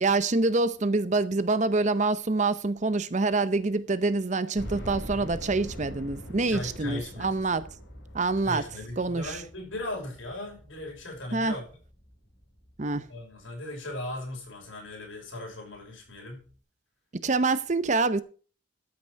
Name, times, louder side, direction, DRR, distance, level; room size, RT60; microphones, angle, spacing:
voice 1, 0.0-7.7 8.1-8.7 9.0-9.4 11.3-11.5 12.8-13.1 17.2-18.2, right 3 dB, 40° right, 0.7 m, -26 dB
sound 1, 4.6-13.5 13.9-14.0 14.4-14.5 15.7-15.8 16.1-16.2, equal, 70° left, 4.1 m, -43 dB
voice 2, 6.3-7.4 8.4-11.6 13.1-16.4, left 1 dB, 85° left, 5.6 m, -38 dB
13.0 x 6.1 x 6.3 m
head